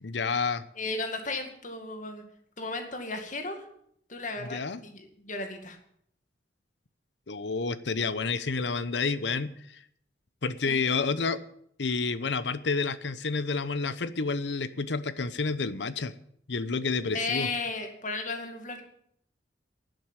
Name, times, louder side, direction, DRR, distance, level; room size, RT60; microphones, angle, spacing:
voice 1, 0.0-0.6 4.4-4.8 7.3-9.8 10.4-11.4 11.8-16.1 16.5-17.5, left 4 dB, 80° left, 14 dB, 0.8 m, -29 dB
voice 2, 0.8-2.2 2.6-3.7 4.1-5.8 10.7-10.9 17.1-18.8, left 3 dB, 45° left, 5 dB, 2.1 m, -34 dB
11.5 x 7.8 x 9.0 m, 0.68 s
head